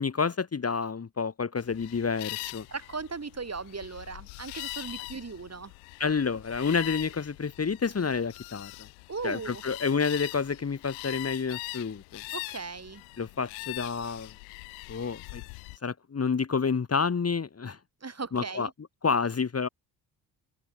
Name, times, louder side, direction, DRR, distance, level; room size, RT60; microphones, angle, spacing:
voice 1, 0.0-2.7 6.0-8.9 9.2-12.2 13.2-14.3 14.9-15.4 15.8-17.8 18.3-18.7 19.0-19.7, left 5 dB, 35° left, 1.9 m, -29 dB
sound 1, 1.6-15.8, left 32 dB, 85° left, 3.6 m, -42 dB
voice 2, 2.7-5.7 9.1-9.6 12.3-13.0 18.0-18.7, right 4 dB, 35° right, 6.6 m, -37 dB
hypercardioid pair, 50°, 45 cm